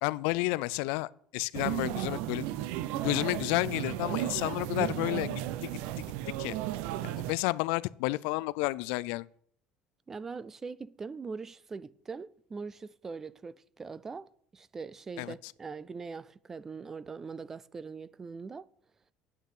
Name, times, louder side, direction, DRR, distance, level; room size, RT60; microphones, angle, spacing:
voice 1, 0.0-2.5 3.0-5.7 6.0-6.1 6.4-6.6 7.0-9.3 15.2-15.3, left 21 dB, 85° left, 0.3 m, -31 dB
sound 1, 1.5-7.3, right 14 dB, 80° right, 0.6 m, -34 dB
voice 2, 10.1-18.7, right 4 dB, 20° right, 0.3 m, -42 dB
8.9 x 8.5 x 4.9 m
cardioid pair, 155°, 2 cm